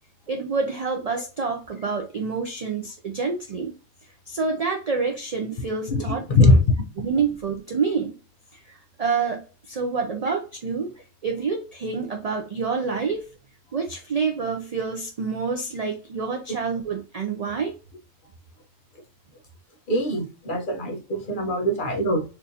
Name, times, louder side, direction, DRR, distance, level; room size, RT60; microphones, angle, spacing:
voice 1, 0.3-3.7 4.3-6.6 7.0-8.1 8.5-10.9 11.2-13.3 13.7-17.8, right 5 dB, 70° right, 0.3 m, -27 dB
voice 2, 19.9-22.2, left 2 dB, 45° left, 0.9 m, -21 dB
4.4 x 2.6 x 2.7 m
omnidirectional pair, 1.3 m